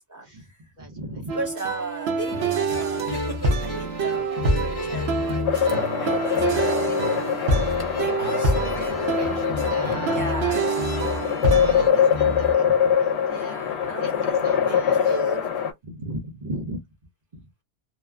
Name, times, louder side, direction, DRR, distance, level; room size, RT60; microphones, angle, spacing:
voice 1, 0.0-0.7 1.3-3.1 3.6-7.0 8.0-9.1 9.6-9.7 10.1-10.8 13.2-15.6, right 3 dB, 20° right, 1.0 m, -36 dB
voice 2, 0.8-1.4 9.2-10.2 11.6-13.5 14.0-14.1 14.4-15.2 15.9-16.8, right 1 dB, 45° right, 1.0 m, -37 dB
sound 1, 1.3-11.9, right 3 dB, 75° right, 1.0 m, -26 dB
sound 2, 2.2-12.5, left 2 dB, 25° left, 0.8 m, -32 dB
sound 3, 5.5-15.7, left 8 dB, 80° left, 0.9 m, -23 dB
2.9 x 2.2 x 2.3 m
omnidirectional pair, 1.1 m